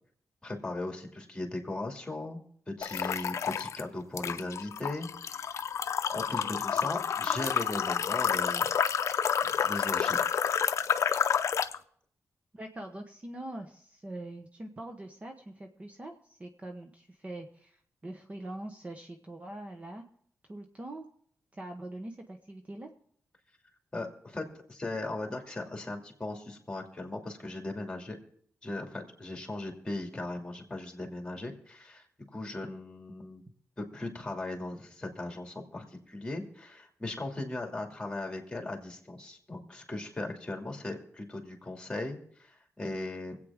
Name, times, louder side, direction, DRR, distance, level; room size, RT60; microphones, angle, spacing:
voice 1, 0.4-2.4 2.7-5.6 6.1-8.8 9.4-10.2 23.9-28.2 28.6-32.0 32.3-33.4 33.8-43.4, left 2 dB, 15° left, 2 dB, 2.5 m, -38 dB
sound 1, 2.8-3.8 4.2-11.8, left 7 dB, 70° left, 0.5 m, -29 dB
voice 2, 12.5-20.0 20.5-21.1 21.5-22.9, right 1 dB, 25° right, 4 dB, 1.0 m, -43 dB
24.5 x 8.5 x 3.6 m, 0.62 s
wide cardioid pair, 115°, 5 cm